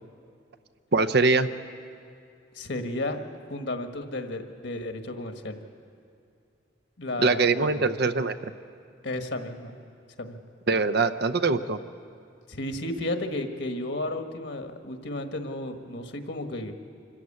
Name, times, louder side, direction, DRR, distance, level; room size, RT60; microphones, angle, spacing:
voice 1, 0.9-1.5 7.2-8.5 10.7-11.8, right 4 dB, 55° right, 12 dB, 0.7 m, -23 dB
voice 2, 2.5-3.2 3.5-5.6 7.0-7.9 9.0-9.8 10.2-10.4 12.5-16.7, left 1 dB, 65° left, 6 dB, 1.5 m, -33 dB
25.5 x 14.5 x 8.6 m, 2.4 s
head